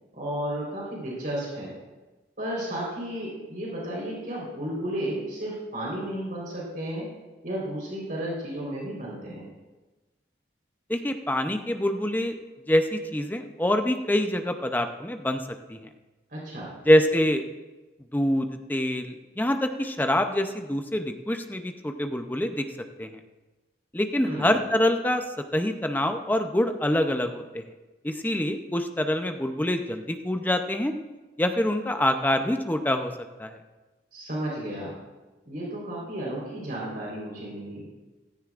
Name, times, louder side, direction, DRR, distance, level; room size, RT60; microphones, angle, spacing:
voice 1, 0.1-1.7 2.4-7.0 7.4-9.5 16.3-16.7 24.2-24.5 34.1-35.0 35.4-37.8, right 1 dB, 50° right, -4 dB, 4.0 m, -33 dB
voice 2, 10.9-12.4 12.7-15.4 15.7-15.8 16.9-17.4 18.1-22.6 23.0-23.1 23.9-25.2 25.5-27.6 28.0-30.9 31.4-33.1 33.4-33.6, left 1 dB, 10° left, 6 dB, 0.6 m, -25 dB
15.5 x 14.0 x 2.5 m, 1.2 s
head